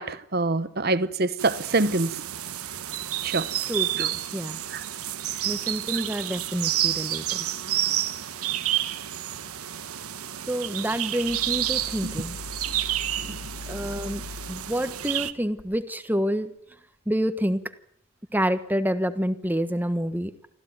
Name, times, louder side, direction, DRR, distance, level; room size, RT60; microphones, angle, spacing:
voice 1, 0.0-2.2 3.2-3.5 4.0-4.1 4.7-4.8 12.0-12.2 12.7-12.8 13.3-13.8, right 2 dB, 45° right, 1.0 m, -26 dB
sound 1, 1.4-15.3, right 12 dB, 90° right, 1.4 m, -30 dB
voice 2, 3.7-4.6 5.4-7.5 10.5-12.4 13.3-13.4 13.7-16.5 17.1-17.6 18.3-20.3, equal, 10° right, 1.3 m, -28 dB
sound 2, 11.3-15.8, left 4 dB, 80° left, 1.0 m, -41 dB
25.5 x 15.5 x 9.6 m
head